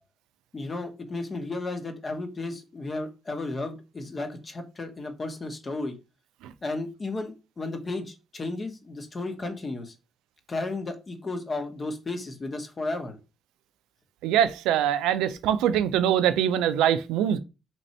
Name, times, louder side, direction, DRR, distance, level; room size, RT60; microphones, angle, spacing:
voice 1, 0.5-5.9 6.6-9.9 10.5-13.2, left 2 dB, 40° left, 1.0 m, -33 dB
voice 2, 14.2-17.4, right 10 dB, 85° right, 0.3 m, -23 dB
3.1 x 2.6 x 4.2 m
supercardioid pair, 60°, 0 cm